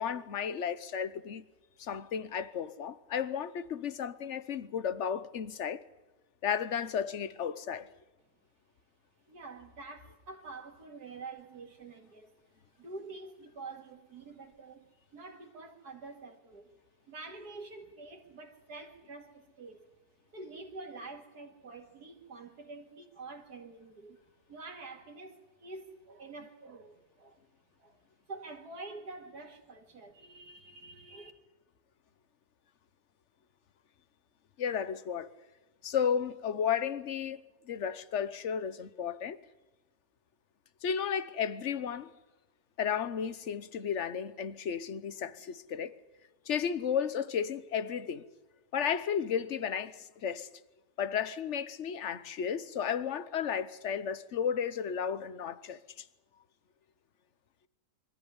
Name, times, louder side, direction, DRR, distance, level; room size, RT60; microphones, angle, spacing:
voice 1, 0.0-1.4 1.8-5.8 6.4-7.9 34.6-35.3 35.8-39.4 40.8-42.1 42.8-45.9 46.5-48.2 48.7-50.5 51.0-56.0, left 7 dB, 55° left, 1.2 m, -33 dB
voice 2, 9.3-12.5 12.8-16.8 17.1-20.0 20.3-24.2 24.5-27.4 27.8-28.0 28.3-31.3, right 3 dB, 80° right, 2.6 m, -47 dB
24.5 x 14.0 x 9.7 m
omnidirectional pair, 1.7 m